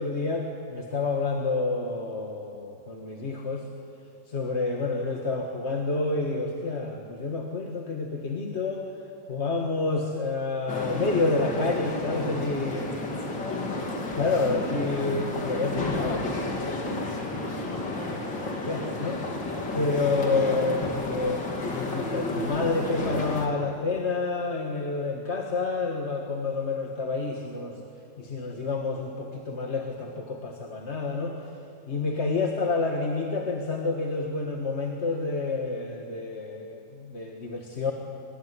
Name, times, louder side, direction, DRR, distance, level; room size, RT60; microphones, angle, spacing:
voice 1, 0.0-3.6 4.3-8.9 9.3-13.1 14.2-19.2 19.7-27.8 28.2-31.4 31.9-37.9, left 3 dB, 40° left, 2 dB, 1.7 m, -29 dB
sound 1, 10.7-23.5, left 2 dB, 70° left, 3.3 m, -31 dB
25.0 x 20.0 x 9.8 m, 2.6 s
omnidirectional pair, 2.0 m